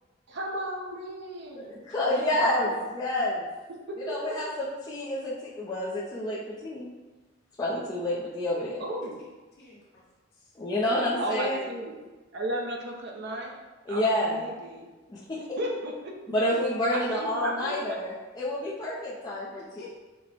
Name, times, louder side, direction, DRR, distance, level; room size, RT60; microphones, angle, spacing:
voice 1, 0.3-1.8 2.4-2.7 3.9-4.4 8.8-9.2 11.2-12.0 12.3-13.6 13.9-14.9 15.3-16.1 16.9-18.0, right 1 dB, 65° right, 1 dB, 0.6 m, -34 dB
voice 2, 1.7-3.5 4.1-6.9 7.6-8.8 10.6-11.7 13.9-14.4 15.1-15.6 16.3-19.6, left 1 dB, 20° left, -8 dB, 0.5 m, -29 dB
voice 3, 9.6-10.0 10.3-10.5 16.4-16.6 19.5-20.0, left 2 dB, 55° left, -7 dB, 1.3 m, -47 dB
4.4 x 2.1 x 4.1 m, 1.2 s
head